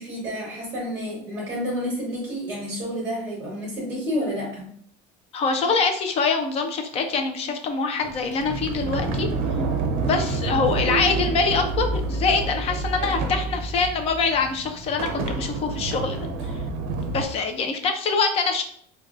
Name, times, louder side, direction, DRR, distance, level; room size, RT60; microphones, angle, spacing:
voice 1, 0.0-4.7, equal, 15° right, -4 dB, 0.9 m, -30 dB
voice 2, 5.3-9.3 10.0-16.6 17.1-18.6, left 4 dB, 30° left, 5 dB, 0.4 m, -24 dB
Sliding door, 8.0-17.2, right 3 dB, 50° right, 0.6 m, -28 dB
4.5 x 2.2 x 2.4 m, 0.63 s
cardioid pair, 165°, 20 cm